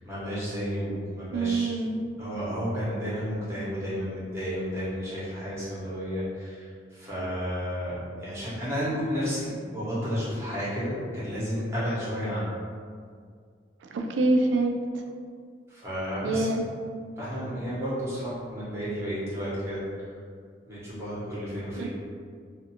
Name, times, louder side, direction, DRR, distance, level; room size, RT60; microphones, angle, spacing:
voice 1, 0.0-1.8 2.2-12.5 15.7-16.6 17.2-19.8 20.7-21.9, equal, 15° right, -10 dB, 0.9 m, -32 dB
voice 2, 1.3-2.0 13.9-14.8 16.2-16.6 21.8-21.9, right 2 dB, 80° right, 3 dB, 0.3 m, -25 dB
2.5 x 2.4 x 2.8 m, 2.1 s
head